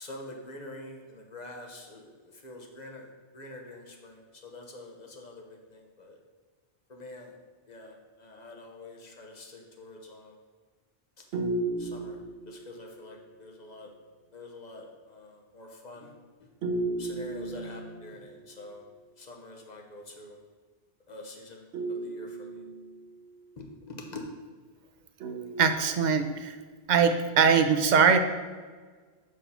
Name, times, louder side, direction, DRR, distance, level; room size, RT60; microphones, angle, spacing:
voice 1, 0.0-6.2 6.9-7.4 7.7-10.4 11.2-11.3 11.8-12.2 12.5-13.9 14.3-16.1 16.4-16.5 17.0-18.8 19.2-20.4 21.1-22.6 23.6-24.2, left 2 dB, 45° left, 1 dB, 1.1 m, -46 dB
sound 1, 11.3-13.0 16.6-18.4 21.7-23.3 25.2-26.4, right 2 dB, 85° right, 1.0 m, -34 dB
voice 2, 25.6-26.6 26.9-28.2, right 6 dB, 55° right, 7 dB, 0.6 m, -22 dB
5.6 x 4.8 x 5.4 m, 1.5 s
omnidirectional pair, 1.1 m